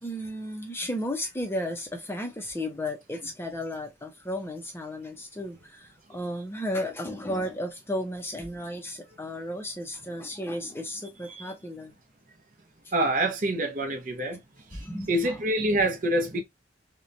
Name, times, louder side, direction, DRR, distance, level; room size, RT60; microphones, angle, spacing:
voice 1, 0.0-11.9 14.7-15.3, left 1 dB, 15° left, 0.5 m, -34 dB
voice 2, 12.9-14.4 14.7-16.4, right 1 dB, 45° right, 0.6 m, -26 dB
2.9 x 2.1 x 2.5 m
head